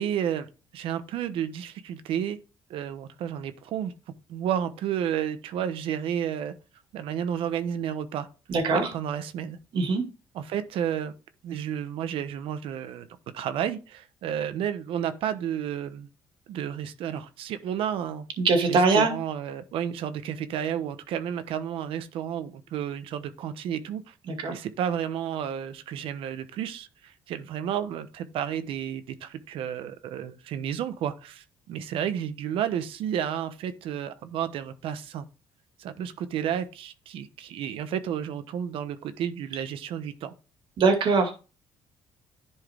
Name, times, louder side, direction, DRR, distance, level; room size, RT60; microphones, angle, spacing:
voice 1, 0.0-2.4 2.7-3.9 4.3-6.5 6.9-8.3 8.7-9.6 10.3-11.1 11.4-13.1 13.3-16.1 16.5-18.3 18.7-24.1 24.5-35.2 35.8-40.3, right 9 dB, 75° right, 1.0 m, -31 dB
voice 2, 8.5-8.9 9.7-10.0 18.4-19.1 24.3-24.6 40.8-41.4, right 4 dB, 60° right, 2.3 m, -22 dB
11.0 x 4.6 x 3.6 m
cardioid pair, 110°, 9 cm